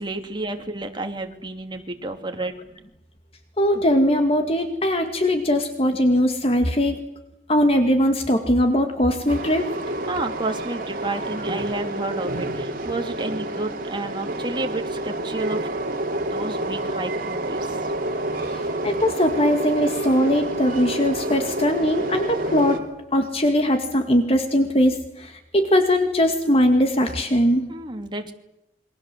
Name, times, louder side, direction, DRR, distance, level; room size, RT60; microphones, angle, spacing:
voice 1, 0.0-2.5 10.1-15.7 16.3-17.9 27.7-28.3, right 2 dB, 25° right, 4 dB, 2.9 m, -31 dB
voice 2, 3.6-7.0 7.5-9.7 18.5-22.8 23.1-27.7, equal, 35° left, 6 dB, 2.1 m, -20 dB
Train, 9.3-22.8, right 1 dB, 50° right, 3.5 m, -28 dB
28.5 x 23.5 x 7.8 m, 0.87 s
head